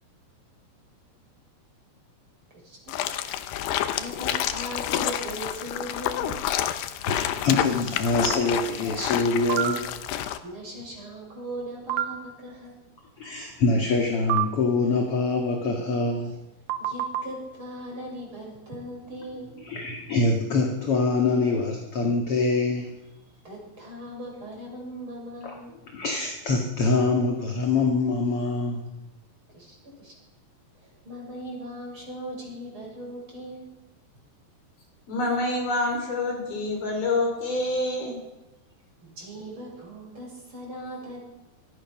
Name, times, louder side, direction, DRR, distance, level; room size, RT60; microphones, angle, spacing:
voice 1, 2.5-3.2 4.0-6.4 7.1-7.2 10.4-12.8 16.8-19.6 23.4-25.7 29.5-30.1 30.8-33.7 39.0-41.2, right 1 dB, 30° right, -1 dB, 7.5 m, -39 dB
sound 1, 2.9-10.4, left 11 dB, 75° left, 2.9 m, -29 dB
voice 2, 7.1-9.9 13.2-16.3 19.6-22.9 25.4-25.6 25.9-28.9, left 3 dB, 40° left, 1 dB, 2.5 m, -24 dB
sound 2, 9.5-9.7 11.9-12.1 14.3-14.5 16.7-17.2, right 12 dB, 75° right, 3.3 m, -25 dB
voice 3, 35.1-38.2, left 2 dB, 60° left, 2 dB, 6.7 m, -26 dB
25.5 x 22.0 x 6.2 m, 1.0 s
omnidirectional pair, 4.9 m